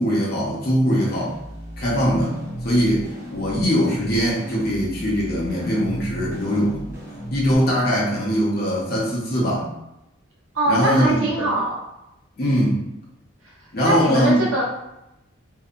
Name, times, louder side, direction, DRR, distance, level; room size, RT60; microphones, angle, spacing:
voice 1, 0.0-1.4 1.8-6.9 7.3-9.7 10.7-11.5 12.4-12.8 13.7-14.4, equal, 50° left, -5 dB, 0.7 m, -21 dB
sound 1, 1.0-7.5, right 1 dB, 10° right, 0.6 m, -35 dB
voice 2, 10.5-11.8 13.8-14.6, right 1 dB, 90° right, -5 dB, 0.9 m, -22 dB
2.7 x 2.2 x 2.4 m, 0.89 s
head